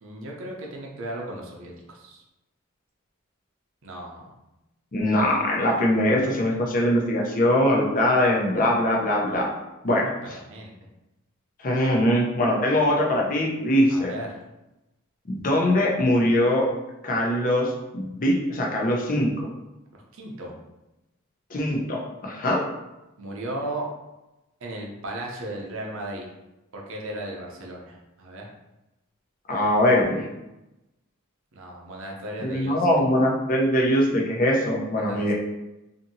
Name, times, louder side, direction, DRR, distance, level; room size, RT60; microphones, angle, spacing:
voice 1, 0.0-2.2 3.8-4.2 9.9-10.7 13.9-14.3 20.1-20.5 23.2-23.8 24.6-26.3 26.7-28.5 31.5-32.8 35.0-35.3, right 1 dB, 65° right, -1 dB, 0.6 m, -36 dB
voice 2, 4.9-9.5 9.8-10.4 11.6-14.1 15.3-16.7 17.0-19.5 21.5-22.6 29.5-30.2 32.4-35.3, left 1 dB, 40° left, -2 dB, 0.5 m, -22 dB
2.7 x 2.6 x 2.6 m, 0.97 s
head